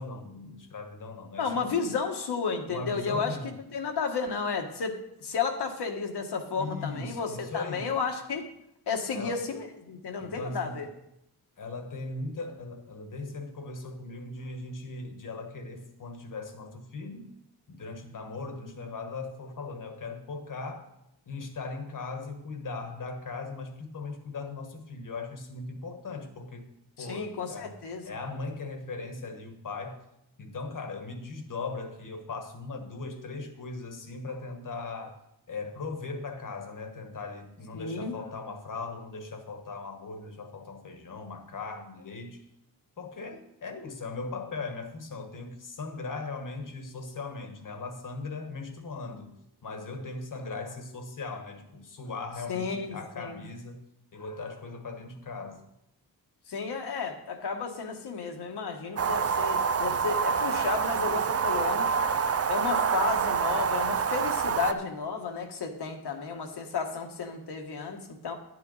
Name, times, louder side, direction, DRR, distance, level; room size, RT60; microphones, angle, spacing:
voice 1, 0.0-1.9 2.7-3.5 6.6-7.9 9.1-9.4 10.2-10.8 11.6-17.3 17.7-20.8 21.3-26.7 27.0-30.0 30.4-35.1 35.5-42.4 43.0-49.3 49.6-53.8 54.1-55.6, left 3 dB, 55° left, 6 dB, 1.4 m, -39 dB
voice 2, 1.4-7.3 7.5-8.5 8.9-10.9 27.0-28.0 37.7-38.1 52.5-53.4 56.5-61.9 62.5-68.3, left 5 dB, 80° left, 3 dB, 1.5 m, -32 dB
sound 1, 59.0-64.7, right 6 dB, 40° right, 0.5 m, -27 dB
11.5 x 9.4 x 4.0 m, 0.82 s
wide cardioid pair, 170°, 39 cm